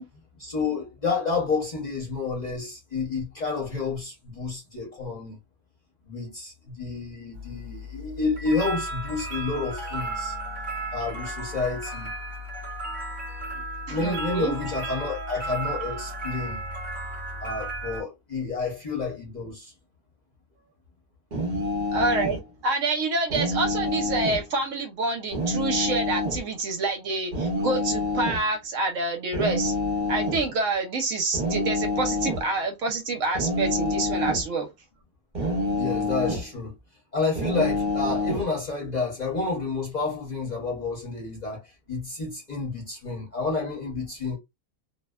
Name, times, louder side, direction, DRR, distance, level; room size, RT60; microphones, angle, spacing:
voice 1, 0.4-5.4 6.1-10.3 10.9-12.1 13.5-13.6 13.9-16.6 17.4-19.7 21.5-21.7 35.8-36.7 37.1-44.4, left 4 dB, 35° left, 0.8 m, -30 dB
sound 1, 7.3-18.0, right 1 dB, 20° right, 1.1 m, -34 dB
voice 2, 13.9-14.5 21.9-29.8 30.1-34.7, right 3 dB, 65° right, 0.9 m, -27 dB
sound 2, 21.3-22.4 23.3-24.4 25.3-26.4 27.3-28.4 29.3-30.5 31.3-32.5 33.3-34.5 35.3-36.5 37.4-38.5, left 2 dB, 40° right, 0.7 m, -27 dB
2.6 x 2.1 x 2.2 m
omnidirectional pair, 1.5 m